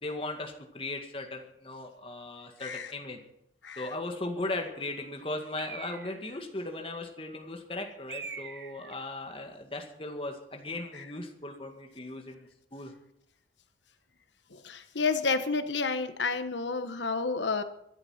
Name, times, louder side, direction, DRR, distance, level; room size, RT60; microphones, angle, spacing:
voice 1, 0.0-3.2 3.8-12.9, left 2 dB, 30° left, 3 dB, 2.0 m, -37 dB
Bird, 5.6-6.4 8.1-9.0, right 6 dB, 60° right, 1.4 m, -43 dB
voice 2, 14.6-17.6, left 4 dB, 85° left, 10 dB, 1.2 m, -30 dB
24.5 x 8.3 x 5.8 m, 0.79 s
head